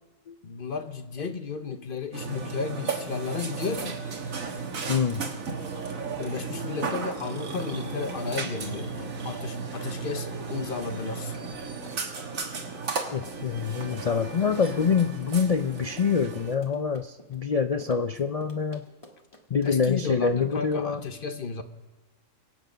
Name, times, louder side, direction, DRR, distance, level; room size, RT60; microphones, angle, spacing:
voice 1, 0.4-4.0 6.2-11.3 19.6-21.6, left 5 dB, 45° left, 1.1 m, -33 dB
Burping eructation, 2.1-16.6, right 4 dB, 85° right, 1.8 m, -35 dB
sound 1, 4.0-9.3, right 2 dB, 15° right, 1.8 m, -52 dB
voice 2, 4.9-5.2 13.1-18.8 19.5-21.0, left 6 dB, 70° left, 0.3 m, -26 dB
Run, 9.6-20.0, left 1 dB, 25° left, 1.5 m, -51 dB
24.0 x 8.1 x 5.1 m
omnidirectional pair, 1.4 m